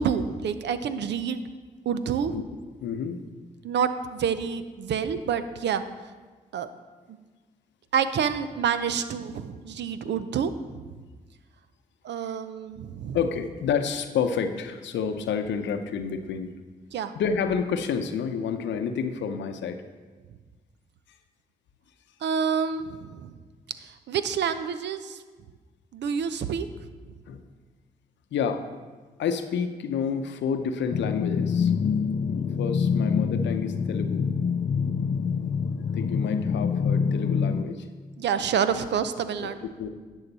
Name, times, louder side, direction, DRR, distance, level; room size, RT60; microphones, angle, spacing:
voice 1, 0.0-1.4 1.9-2.4 3.6-5.8 6.5-6.7 7.9-11.0 12.0-13.2 16.9-17.1 22.2-23.3 23.8-25.2 25.9-26.7 38.2-39.7, right 7 dB, 70° right, 11 dB, 0.6 m, -28 dB
voice 2, 2.8-3.2 12.2-12.3 13.1-16.5 17.1-19.8 27.3-27.4 28.3-28.6 29.2-31.7 32.6-34.3 35.9-37.9 39.4-39.5 39.8-39.9, left 6 dB, 75° left, 8 dB, 0.7 m, -29 dB
sound 1, 30.9-37.6, left 6 dB, 45° left, 0.5 m, -25 dB
11.0 x 6.4 x 4.1 m, 1.4 s
hypercardioid pair, 40°, 19 cm